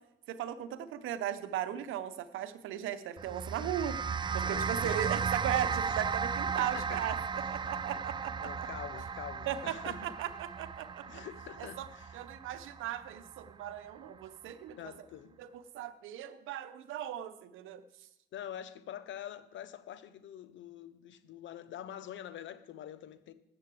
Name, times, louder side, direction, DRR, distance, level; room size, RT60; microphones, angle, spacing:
voice 1, 0.3-4.0 4.3-7.2 7.5-8.7 9.5-11.2 11.6-11.9 12.1-14.9 15.4-17.8, right 11 dB, 85° right, 0.7 m, -37 dB
sound 1, 3.2-13.7, right 6 dB, 25° right, 0.4 m, -36 dB
voice 2, 3.6-5.2 5.8-6.0 6.5-7.0 7.4-7.5 8.4-10.2 11.1-12.2 14.8-15.4 18.3-23.3, left 10 dB, 70° left, 0.9 m, -46 dB
7.7 x 7.6 x 7.6 m
cardioid pair, 90°, 20 cm